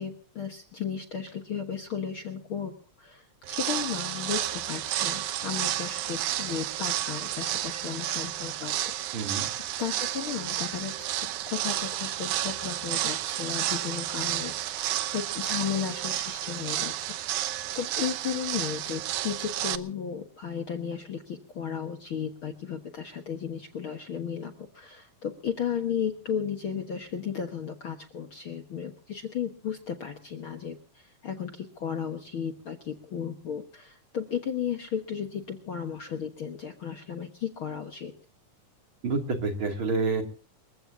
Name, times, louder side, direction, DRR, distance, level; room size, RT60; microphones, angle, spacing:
voice 1, 0.0-9.3 9.8-38.1, left 8 dB, 50° left, 4 dB, 1.8 m, -35 dB
sound 1, 3.4-19.8, right 13 dB, 75° right, 2.3 m, -31 dB
voice 2, 9.1-9.5 39.0-40.2, right 4 dB, 40° right, 3 dB, 3.3 m, -28 dB
29.0 x 16.0 x 2.8 m, 0.39 s
omnidirectional pair, 3.7 m